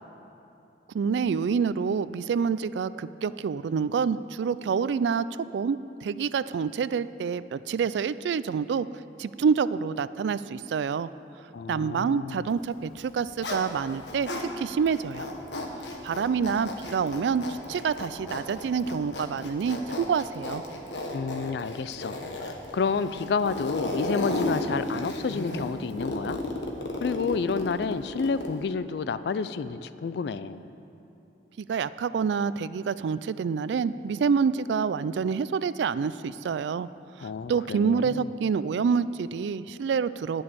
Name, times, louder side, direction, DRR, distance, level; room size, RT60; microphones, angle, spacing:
voice 1, 0.9-5.3 5.5-8.9 9.2-11.1 11.7-15.3 16.0-20.6 31.6-36.9 37.2-40.4, right 6 dB, 75° right, 16 dB, 0.3 m, -27 dB
voice 2, 11.5-12.5 21.1-22.2 22.4-26.4 27.0-30.7 37.2-38.3, left 5 dB, 65° left, 13 dB, 0.4 m, -30 dB
Zipper (clothing), 12.9-14.5 14.9-28.6, left 1 dB, 85° left, 1.3 m, -34 dB
11.0 x 6.4 x 8.9 m, 2.9 s
head